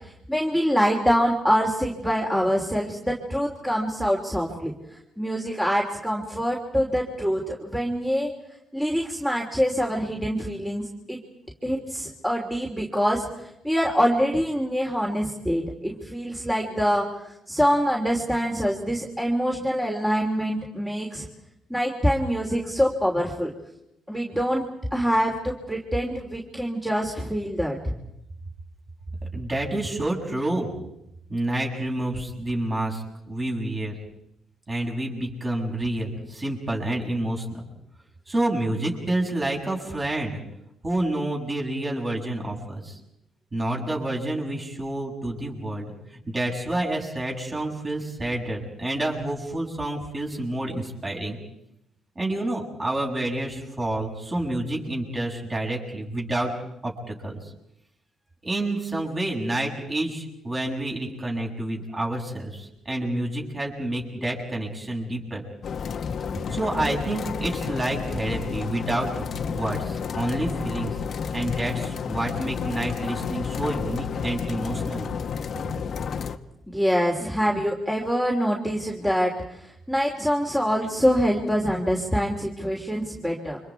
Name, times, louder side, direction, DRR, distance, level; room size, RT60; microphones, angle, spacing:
voice 1, 0.3-4.7 5.2-8.3 8.7-11.2 11.6-21.2 21.7-23.5 24.1-24.6 24.9-27.9 76.7-83.6, equal, 5° right, -1 dB, 3.1 m, -25 dB
voice 2, 29.3-30.7 31.3-34.0 34.7-37.7 38.3-40.4 40.8-43.0 43.5-51.4 52.2-56.5 56.8-57.5 58.4-65.4 66.5-70.9 71.3-75.1, right 1 dB, 25° right, -1 dB, 6.9 m, -29 dB
sound 1, 65.6-76.4, left 6 dB, 55° left, 1.3 m, -31 dB
30.0 x 25.5 x 4.7 m, 0.81 s
cardioid pair, 90°, 0 cm